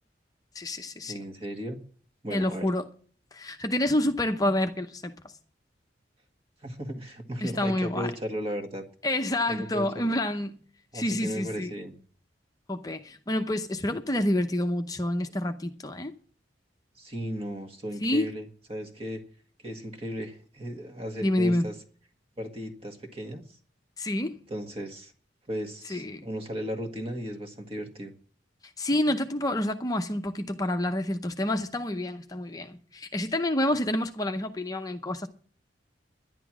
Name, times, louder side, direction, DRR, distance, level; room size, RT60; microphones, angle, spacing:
voice 1, 0.5-1.1 2.3-2.9 3.3-5.3 7.4-8.1 9.0-10.6 10.9-11.7 12.7-16.1 18.0-18.3 21.2-21.7 24.0-24.4 25.9-26.2 28.8-35.3, left 1 dB, 20° left, 0.7 m, -28 dB
voice 2, 1.1-1.8 2.2-2.7 6.6-8.8 9.5-10.2 10.9-12.0 17.0-19.2 19.6-21.8 22.4-23.6 24.5-25.1 25.5-28.1, equal, 30° right, 1.8 m, -36 dB
11.0 x 11.0 x 6.1 m
head